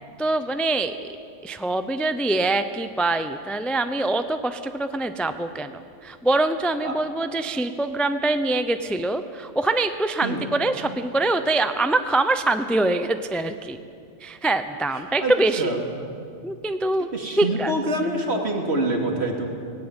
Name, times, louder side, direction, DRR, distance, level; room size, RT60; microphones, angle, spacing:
voice 1, 0.2-1.1 1.4-13.8 14.2-15.8 16.4-17.1 17.4-17.7, right 2 dB, ahead, 9 dB, 0.5 m, -24 dB
voice 2, 17.1-19.5, right 1 dB, 60° right, 2 dB, 2.7 m, -25 dB
18.0 x 18.0 x 9.0 m, 2.3 s
omnidirectional pair, 1.2 m